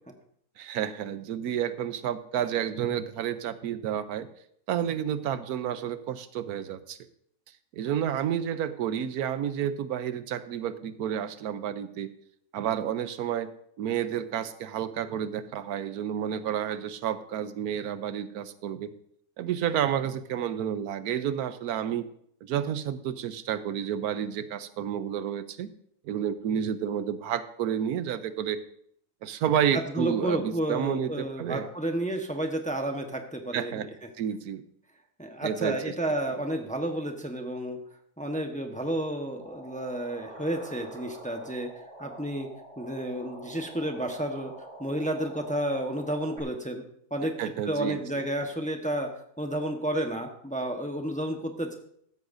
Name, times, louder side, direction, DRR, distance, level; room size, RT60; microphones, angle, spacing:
voice 1, 0.6-4.3 4.7-7.0 7.7-12.1 12.5-18.9 19.4-22.1 22.4-25.7 26.0-28.6 29.2-31.7 33.5-33.9 34.2-34.6 35.4-35.9 47.4-48.2, right 9 dB, 90° right, 13 dB, 1.2 m, -30 dB
voice 2, 29.7-33.8 35.2-37.8 38.2-41.7 42.0-42.5 42.8-44.5 44.8-46.8 47.1-47.3 47.7-49.1 49.4-51.8, right 1 dB, 5° left, 3 dB, 0.9 m, -31 dB
sound 1, 39.4-46.4, right 1 dB, 50° right, 3.0 m, -46 dB
15.0 x 13.0 x 2.7 m, 0.68 s
omnidirectional pair, 1.6 m